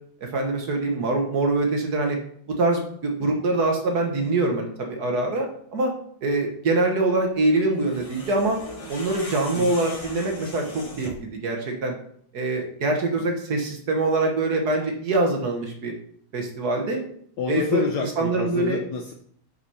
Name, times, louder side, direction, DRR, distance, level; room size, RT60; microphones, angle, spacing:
voice 1, 0.3-2.2 2.6-5.9 6.2-8.6 8.9-11.9 12.3-15.9 16.3-17.0 17.5-17.8 18.2-18.8, right 2 dB, 55° right, 2 dB, 1.7 m, -24 dB
sound 1, 7.7-11.3, left 1 dB, 25° left, 0.8 m, -39 dB
voice 2, 17.4-19.1, left 5 dB, 65° left, 3 dB, 1.3 m, -29 dB
6.1 x 5.7 x 5.6 m, 0.63 s
omnidirectional pair, 2.1 m